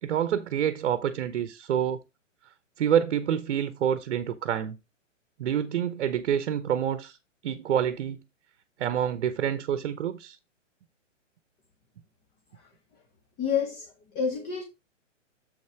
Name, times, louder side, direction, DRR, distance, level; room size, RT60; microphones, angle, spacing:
voice 1, 0.0-2.0 2.8-4.8 5.4-7.2 7.4-8.2 8.8-10.4, right 9 dB, 60° right, 0.9 m, -27 dB
voice 2, 13.4-14.6, left 6 dB, 25° left, 1.4 m, -29 dB
7.4 x 5.5 x 4.4 m
hypercardioid pair, 130°, 38 cm